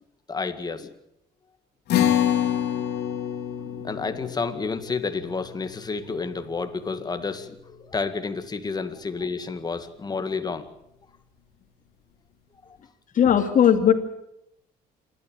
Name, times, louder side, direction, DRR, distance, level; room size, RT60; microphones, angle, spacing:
voice 1, 0.3-0.9 3.6-10.7 12.6-12.8, left 4 dB, 25° left, 8 dB, 2.0 m, -30 dB
sound 1, 1.9-8.5, left 10 dB, 75° left, 3.1 m, -28 dB
voice 2, 13.1-13.9, left 9 dB, 50° left, 7 dB, 2.5 m, -17 dB
27.5 x 12.5 x 9.0 m, 0.84 s
cardioid pair, 110°, 17 cm